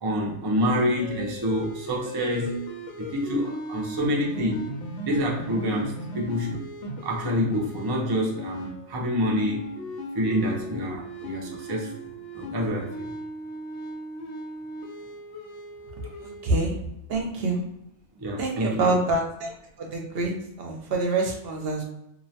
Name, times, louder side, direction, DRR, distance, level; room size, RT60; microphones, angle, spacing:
voice 1, 0.0-2.7 3.0-4.7 5.0-6.6 7.0-9.7 10.1-12.0 12.3-13.1 16.2-16.3 17.3-17.4 18.2-19.0, equal, 40° right, -2 dB, 0.3 m, -27 dB
sound 1, 0.6-16.6, equal, 90° left, 0.9 m, -37 dB
voice 2, 16.4-16.8 17.1-17.6 18.4-19.5 19.8-21.8, right 2 dB, 65° right, 1 dB, 0.7 m, -26 dB
2.7 x 2.1 x 2.7 m, 0.82 s
omnidirectional pair, 1.2 m